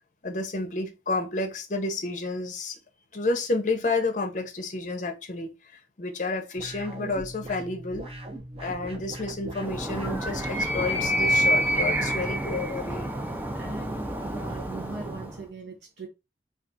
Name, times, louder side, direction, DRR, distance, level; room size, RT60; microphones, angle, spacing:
voice 1, 0.2-2.8 3.1-8.1 8.6-13.1, left 2 dB, 45° left, 0.6 m, -30 dB
sound 1, 6.6-11.9, right 1 dB, 35° right, 0.7 m, -40 dB
Animal, 9.6-15.4, equal, 10° right, 0.4 m, -28 dB
voice 2, 13.5-16.1, right 3 dB, 75° right, 0.6 m, -40 dB
2.4 x 2.3 x 3.9 m
head